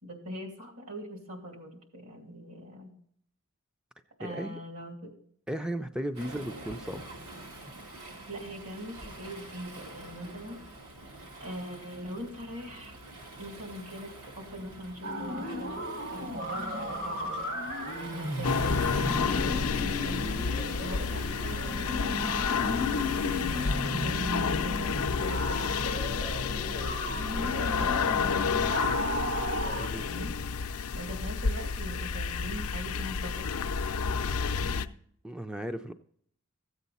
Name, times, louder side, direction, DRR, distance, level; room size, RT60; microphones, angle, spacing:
voice 1, 0.0-2.9 4.2-5.1 6.2-6.3 8.3-10.6 11.4-13.0 13.4-17.5 18.1-22.3 22.8-26.7 27.4-29.0 29.9-30.4 30.9-33.8 34.2-34.8, equal, 75° right, 2 dB, 2.7 m, -42 dB
voice 2, 4.2-4.6 5.5-7.0 29.8-30.1 35.2-35.9, right 1 dB, 5° right, 8 dB, 0.3 m, -35 dB
Waves surf, 6.1-23.8, right 1 dB, 90° right, 2.1 m, -46 dB
sound 1, 15.0-29.9, left 1 dB, 60° right, 1.6 m, -35 dB
sound 2, 18.4-34.9, left 5 dB, 80° left, 0.5 m, -30 dB
14.5 x 8.1 x 4.1 m, 0.64 s
head